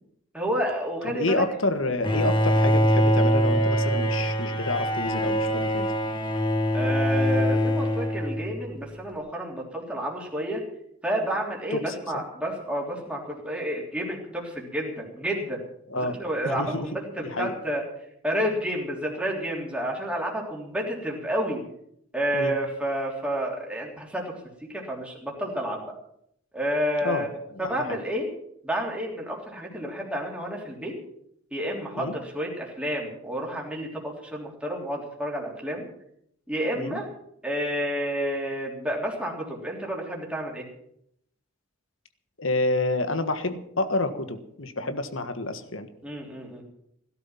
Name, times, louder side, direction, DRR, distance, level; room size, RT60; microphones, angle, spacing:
voice 1, 0.3-1.4 6.7-10.6 11.0-15.6 15.9-17.8 18.2-21.6 22.1-25.9 26.5-27.3 27.6-28.3 28.6-30.9 31.5-35.9 36.5-37.1 37.4-40.6 46.0-46.6, equal, 5° right, -2 dB, 3.4 m, -30 dB
voice 2, 1.0-5.9 11.7-12.2 15.9-16.2 16.4-16.9 17.2-17.5 22.3-22.5 27.0-27.3 27.5-28.0 31.9-32.1 36.8-37.0 42.4-45.9, left 2 dB, 70° left, 9 dB, 1.5 m, -28 dB
Bowed string instrument, 2.0-8.8, equal, 25° left, 1.6 m, -23 dB
17.0 x 12.0 x 5.8 m, 0.73 s
head